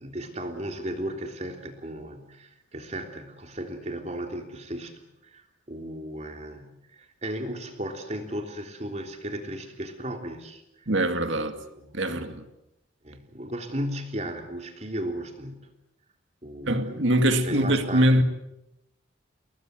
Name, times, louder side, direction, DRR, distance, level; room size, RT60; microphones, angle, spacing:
voice 1, 0.0-6.7 7.0-10.6 11.3-12.3 13.0-15.6 16.4-17.0 17.4-18.1, right 1 dB, 35° right, 3.4 m, -35 dB
voice 2, 10.9-11.6 11.9-12.4 16.7-18.2, right 1 dB, 65° right, 2.4 m, -23 dB
29.0 x 21.0 x 7.8 m
head